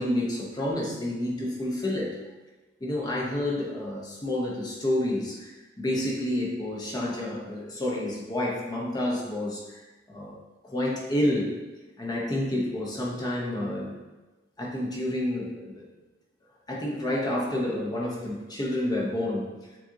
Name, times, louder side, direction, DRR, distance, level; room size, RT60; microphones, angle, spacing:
voice 1, 0.0-2.1 2.8-5.5 5.8-9.6 10.1-10.4 10.6-11.5 12.0-14.0 14.6-15.8 16.7-19.5, left 1 dB, 20° left, -3 dB, 0.7 m, -29 dB
7.4 x 2.5 x 2.6 m, 1.2 s
head